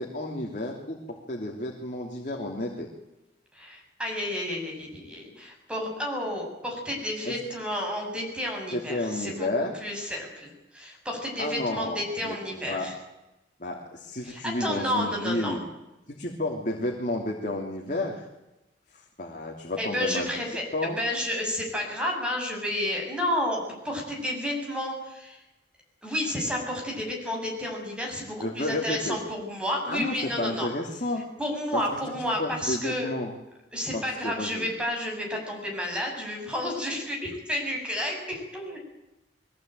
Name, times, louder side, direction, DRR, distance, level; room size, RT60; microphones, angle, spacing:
voice 1, 0.0-2.9 7.2-7.3 8.7-9.7 11.4-12.4 12.6-12.9 13.6-15.6 16.1-18.2 18.9-20.3 20.7-21.0 28.4-29.2 29.9-31.2 31.7-32.0 32.4-33.3 33.9-34.7, left 1 dB, 45° left, 0 dB, 3.1 m, -31 dB
voice 2, 3.5-9.5 9.8-12.9 14.2-15.6 19.8-25.4 26.0-30.7 31.4-33.1 33.7-38.8, left 1 dB, 5° right, 0 dB, 7.5 m, -31 dB
22.5 x 17.0 x 9.2 m, 0.97 s
head